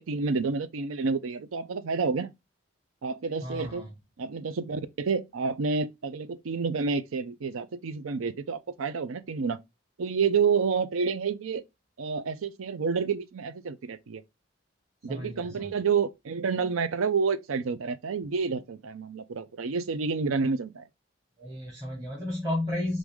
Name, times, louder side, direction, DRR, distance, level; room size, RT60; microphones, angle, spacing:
voice 1, 0.0-2.3 3.0-3.9 4.2-9.6 10.0-11.6 12.0-14.2 15.0-20.8, right 5 dB, 90° right, 0.5 m, -29 dB
voice 2, 3.4-3.9 15.1-15.7 21.4-23.0, left 1 dB, 15° right, 1.2 m, -33 dB
4.7 x 2.6 x 3.5 m
head